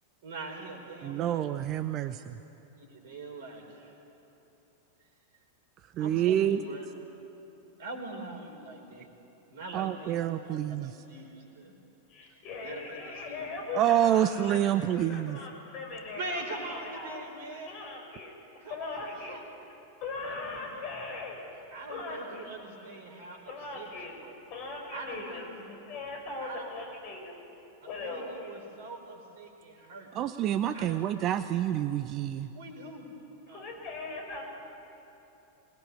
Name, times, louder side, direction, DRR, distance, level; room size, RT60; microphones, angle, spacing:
voice 1, 0.2-1.5 2.8-4.0 6.0-6.9 7.8-9.1 9.5-11.7 12.3-13.4 16.2-17.7 18.6-19.4 20.3-20.8 21.7-24.4 24.9-25.7 26.4-26.7 27.8-30.1 30.7-31.0 32.5-33.1 33.5-33.7, right 2 dB, 55° right, 3 dB, 4.9 m, -43 dB
voice 2, 1.0-2.4 6.0-6.6 9.7-10.9 13.7-15.4 30.2-32.5, right 11 dB, 35° right, 11 dB, 0.7 m, -27 dB
voice 3, 12.1-17.2 17.6-18.3 18.7-19.4 20.0-21.4 21.9-22.5 23.2-24.2 24.5-27.3 27.9-28.6 33.5-34.4, left 3 dB, 40° left, 0 dB, 7.2 m, -40 dB
25.5 x 19.5 x 9.9 m, 2.9 s
figure-of-eight pair, 90°, 0 cm